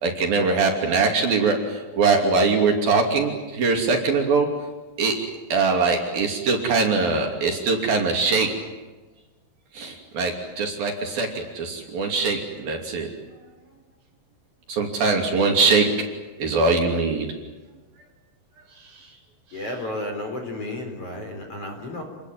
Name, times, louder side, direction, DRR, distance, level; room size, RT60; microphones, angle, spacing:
voice 1, 0.0-4.5 5.0-5.2 5.5-8.5 9.7-13.1 14.7-15.9 16.4-17.3, right 4 dB, 55° right, 2 dB, 4.3 m, -22 dB
voice 2, 19.5-22.0, left 1 dB, 35° left, 3 dB, 4.7 m, -32 dB
28.5 x 20.5 x 9.1 m, 1.2 s
omnidirectional pair, 5.4 m